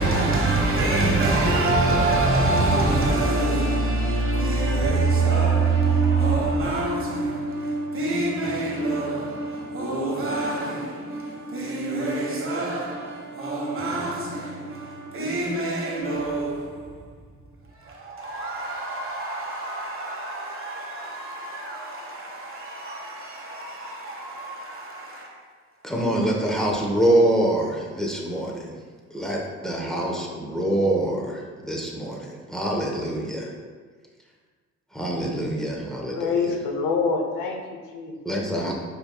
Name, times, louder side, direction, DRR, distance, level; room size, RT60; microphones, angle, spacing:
voice 1, 0.0-17.0 17.8-25.4, right 2 dB, 45° right, 1.2 m, -25 dB
voice 2, 25.8-28.8 29.1-33.5 34.9-36.5 38.2-38.7, right 1 dB, ahead, 0.9 m, -25 dB
voice 3, 36.2-38.2, left 4 dB, 85° left, 0.8 m, -26 dB
5.1 x 4.6 x 2.3 m
cardioid pair, 90°, 30 cm